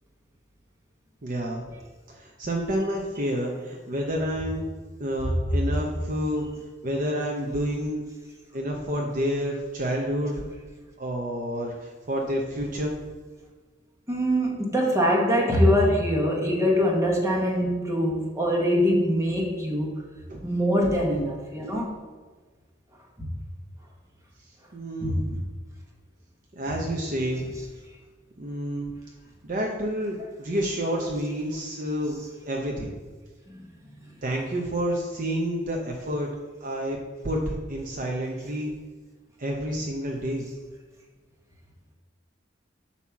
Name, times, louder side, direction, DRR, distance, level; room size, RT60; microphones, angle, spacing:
voice 1, 1.2-1.6 2.1-4.6 5.0-6.5 6.8-8.0 8.5-10.4 11.0-12.9 20.3-20.5 24.7-25.5 26.6-27.6 28.4-28.9 29.4-32.2 32.5-32.9 34.2-36.3 36.6-37.0 37.2-38.7 39.4-40.5, equal, 45° right, 0 dB, 0.7 m, -29 dB
voice 2, 14.1-20.0 20.4-22.0 23.2-23.3 25.0-25.2 26.7-26.8 30.2-30.3 33.5-34.1, equal, 15° right, -2 dB, 1.3 m, -24 dB
8.3 x 2.9 x 5.9 m, 1.4 s
head